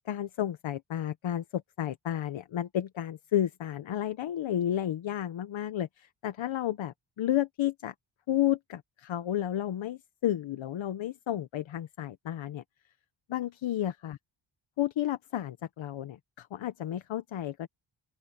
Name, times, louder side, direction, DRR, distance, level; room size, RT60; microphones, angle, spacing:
voice 1, 0.1-7.9 8.3-12.6 13.3-14.2 14.8-17.7, left 11 dB, 80° left, 1.0 m, -32 dB
open air
wide cardioid pair, 115°, 46 cm